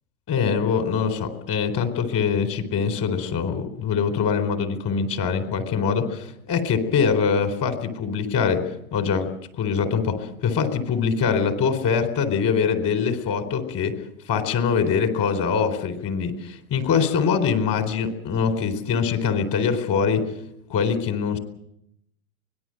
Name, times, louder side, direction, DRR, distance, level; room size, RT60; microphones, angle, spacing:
voice 1, 0.3-9.3 9.6-20.3 20.7-21.4, left 6 dB, 30° left, 9 dB, 4.2 m, -23 dB
24.5 x 20.0 x 7.9 m, 0.77 s
hypercardioid pair, 145°, 43 cm